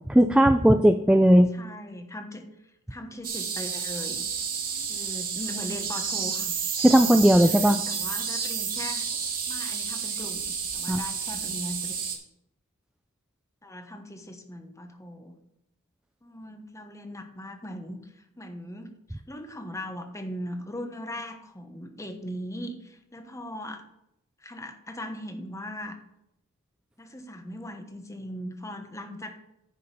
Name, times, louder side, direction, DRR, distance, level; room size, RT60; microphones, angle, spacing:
voice 1, 0.1-1.5 6.8-7.8 10.9-11.0, equal, 5° right, 7 dB, 0.3 m, -17 dB
voice 2, 1.5-2.5 2.9-4.2 4.9-6.6 7.4-9.1 9.5-12.1 13.6-15.4 16.2-23.8 24.4-26.0 27.0-29.4, equal, 15° left, 6 dB, 1.1 m, -39 dB
sound 1, 3.2-12.2, right 6 dB, 40° right, 1.9 m, -31 dB
10.0 x 5.4 x 5.5 m, 0.79 s
head